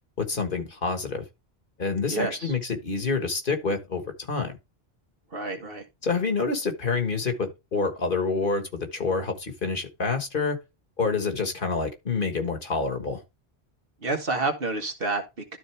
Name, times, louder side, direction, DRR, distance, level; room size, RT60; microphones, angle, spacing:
voice 1, 0.2-1.2 1.8-4.5 6.0-10.6 11.0-13.2, left 4 dB, 55° left, 1.7 m, -27 dB
voice 2, 2.1-2.5 5.3-5.8 14.0-15.6, right 3 dB, 65° right, 1.7 m, -29 dB
12.5 x 4.2 x 3.3 m
omnidirectional pair, 1.0 m